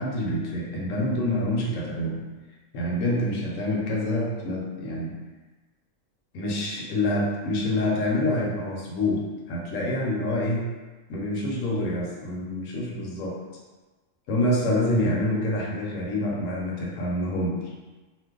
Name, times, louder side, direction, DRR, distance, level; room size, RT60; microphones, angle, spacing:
voice 1, 0.0-2.2 2.7-5.2 6.3-10.7 11.1-13.4 14.3-17.6, left 1 dB, 70° left, -3 dB, 1.0 m, -27 dB
2.5 x 2.2 x 3.6 m, 1.3 s
omnidirectional pair, 1.5 m